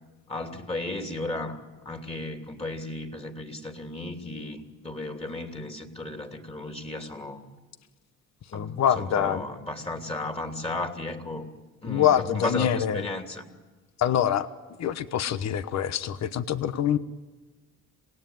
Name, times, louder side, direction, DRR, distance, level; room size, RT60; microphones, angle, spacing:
voice 1, 0.3-1.6 1.8-7.4 8.5-11.5 11.8-13.4, left 2 dB, 20° left, 4 dB, 3.1 m, -34 dB
voice 2, 8.5-9.4 11.8-13.1 14.0-14.5 14.8-17.0, left 10 dB, 65° left, 13 dB, 1.1 m, -25 dB
27.0 x 18.5 x 9.4 m, 1.3 s
cardioid pair, 90°, 30 cm